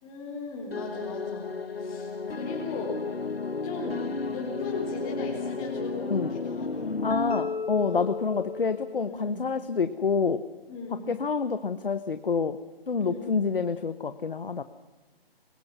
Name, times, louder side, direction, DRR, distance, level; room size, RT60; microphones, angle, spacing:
voice 1, 0.0-1.5 1.8-3.0 3.6-6.9 7.7-8.1 9.0-9.4 10.7-11.1 12.9-13.3, left 3 dB, 15° left, -4 dB, 3.9 m, -38 dB
sound 1, 0.7-9.1, left 4 dB, 80° left, 1.2 m, -33 dB
voice 2, 7.0-10.4 11.1-12.6 12.9-14.6, left 5 dB, 65° left, 11 dB, 1.2 m, -27 dB
27.0 x 21.5 x 6.1 m, 1.2 s
figure-of-eight pair, 140°, 30 cm